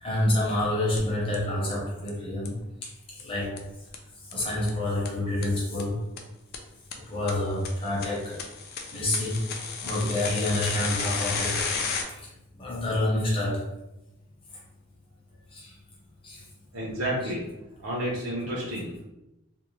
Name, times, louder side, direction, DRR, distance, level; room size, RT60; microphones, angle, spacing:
voice 1, 0.0-2.6 2.8-2.9 3.2-3.6 4.3-6.0 6.9-8.4 8.9-9.5 9.8-11.7 12.1-12.3 12.5-13.6 15.5-15.7 16.2-16.4, left 1 dB, 25° left, -5 dB, 0.7 m, -28 dB
sound 1, 1.0-1.1 1.3-1.4 1.7-1.8 2.1-2.2 2.4-2.5 2.8-2.9 3.2-3.3 3.6-3.7 3.9-4.0 4.3-4.4 4.7-4.8 5.0-5.1 5.4-5.5 5.8-5.9 6.2-6.3 6.5-6.6 6.9-7.0 7.3-7.4 7.6-12.0, left 5 dB, 45° left, 0.3 m, -32 dB
voice 2, 16.7-17.5 17.8-19.0, right 1 dB, 70° right, -5 dB, 0.6 m, -31 dB
2.5 x 2.0 x 3.0 m, 0.92 s
head